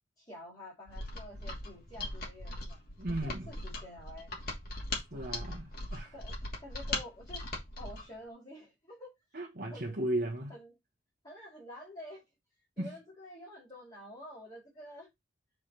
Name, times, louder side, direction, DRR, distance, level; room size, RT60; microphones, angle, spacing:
voice 1, 0.2-2.8 3.1-4.3 5.1-5.5 6.1-6.3 6.6-7.4 7.8-9.1 9.7-10.0 10.5-10.7 11.2-12.2 12.8-15.1, left 1 dB, 20° left, 5.4 m, -49 dB
Mechanisms, 0.9-8.1, left 2 dB, 50° left, 2.7 m, -39 dB
voice 2, 3.0-3.5 5.1-6.1 9.3-10.5 12.8-12.9, right 1 dB, 50° right, 1.4 m, -36 dB
7.3 x 4.9 x 4.4 m
head